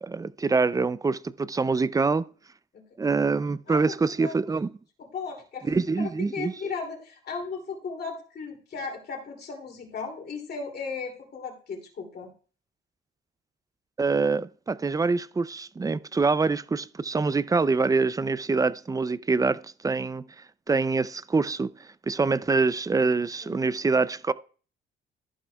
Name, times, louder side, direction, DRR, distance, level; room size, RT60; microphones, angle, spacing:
voice 1, 0.0-2.3 3.0-4.7 5.6-6.5 14.0-20.2 20.7-24.3, right 4 dB, 15° right, 0.4 m, -25 dB
voice 2, 4.0-4.3 5.0-12.3 23.4-23.7, left 5 dB, 55° left, 2.7 m, -36 dB
13.5 x 11.0 x 2.3 m
cardioid pair, 90°, 20 cm